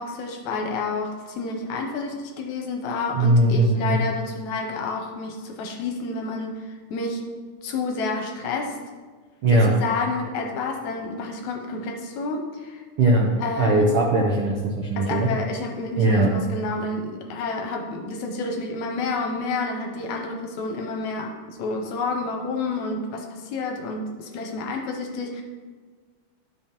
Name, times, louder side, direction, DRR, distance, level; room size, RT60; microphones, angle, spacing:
voice 1, 0.0-7.3 7.6-8.8 9.5-12.8 13.4-13.9 15.0-25.4, left 3 dB, 75° left, 3 dB, 2.0 m, -29 dB
voice 2, 3.2-4.0 9.4-9.7 13.0-13.3 13.6-15.3 16.0-16.3, right 2 dB, 90° right, -1 dB, 1.2 m, -19 dB
12.0 x 5.1 x 2.9 m, 1.5 s
omnidirectional pair, 3.6 m